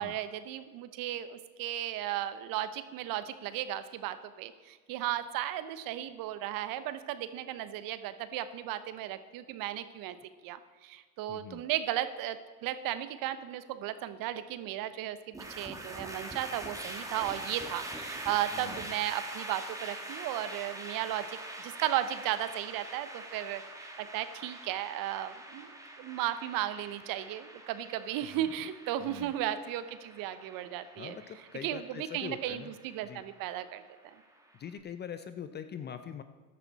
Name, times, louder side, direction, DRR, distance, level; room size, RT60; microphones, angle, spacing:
voice 1, 0.0-10.2 10.4-31.2 31.6-34.2, right 12 dB, 45° right, 13 dB, 1.0 m, -35 dB
voice 2, 11.3-11.6 18.5-18.8 28.3-28.5 29.0-29.3 31.0-32.7 33.0-33.2 34.6-36.2, left 8 dB, 20° left, 10 dB, 0.6 m, -43 dB
sound 1, 15.3-34.6, right 1 dB, 5° right, 1.9 m, -44 dB
14.5 x 12.0 x 4.2 m, 1.5 s
hypercardioid pair, 95°, 47 cm